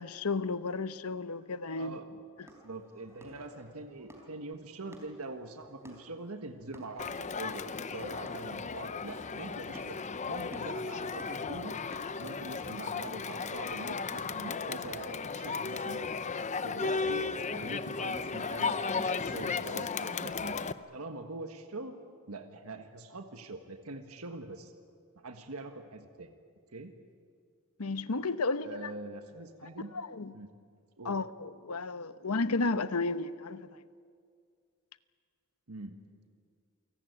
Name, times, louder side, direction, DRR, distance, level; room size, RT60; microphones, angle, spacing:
voice 1, 0.0-2.0 27.8-28.9 29.9-30.3 31.0-33.7, left 3 dB, 85° left, 0.9 m, -33 dB
voice 2, 1.8-7.6 7.9-10.0 10.3-11.8 12.2-16.1 16.6-20.6 20.9-22.0 22.3-24.7 25.2-26.3 26.7-26.9 28.6-29.9 30.3-30.5 31.0-31.2 35.7-36.0, right 2 dB, 75° right, 1.5 m, -43 dB
sound 1, 2.4-15.1, right 1 dB, 10° right, 3.9 m, -56 dB
Crowd, 7.0-20.7, left 5 dB, 35° left, 0.7 m, -35 dB
28.0 x 18.0 x 9.5 m
head